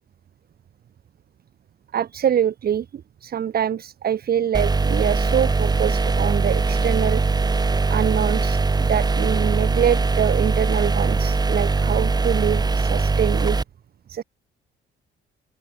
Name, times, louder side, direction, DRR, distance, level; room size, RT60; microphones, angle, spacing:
voice 1, 1.9-7.2 7.9-13.6 14.1-14.2, right 9 dB, 50° right, 1.0 m, -24 dB
sound 1, 4.5-13.6, right 4 dB, 20° right, 0.9 m, -21 dB
open air
cardioid pair, 90°, 20 cm